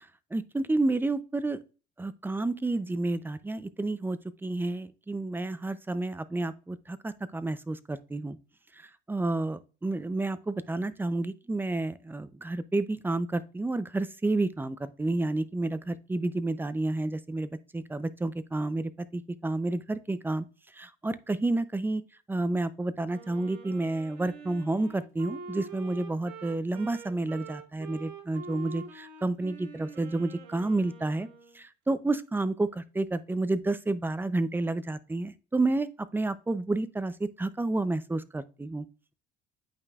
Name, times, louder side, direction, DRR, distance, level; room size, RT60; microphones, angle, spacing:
voice 1, 0.3-1.6 2.0-8.4 9.1-20.4 20.8-22.0 22.3-31.3 31.6-35.9 36.1-38.8, right 2 dB, 10° right, 0.5 m, -30 dB
Wind instrument woodwind instrument, 23.1-31.6, right 4 dB, 85° right, 2.0 m, -45 dB
8.8 x 5.4 x 2.4 m
supercardioid pair, 95°, 20 cm